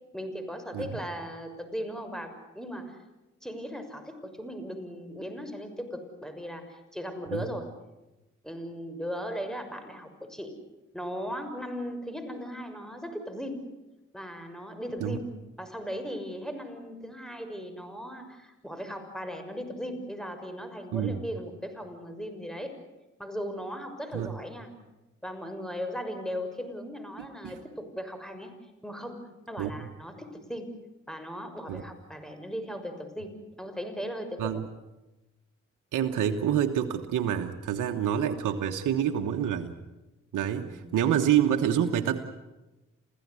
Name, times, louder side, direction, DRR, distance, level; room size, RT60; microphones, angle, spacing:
voice 1, 0.1-3.0 3.4-7.7 8.4-10.5 10.9-13.6 14.1-15.2 15.6-22.8 23.2-24.7 25.2-28.5 28.8-30.7 31.1-34.6 40.6-40.8, equal, ahead, 8 dB, 6.3 m, -37 dB
voice 2, 35.9-39.7 40.3-42.2, right 9 dB, 85° right, 4 dB, 1.3 m, -27 dB
28.0 x 16.0 x 9.7 m, 1.0 s
supercardioid pair, 45°, 30 cm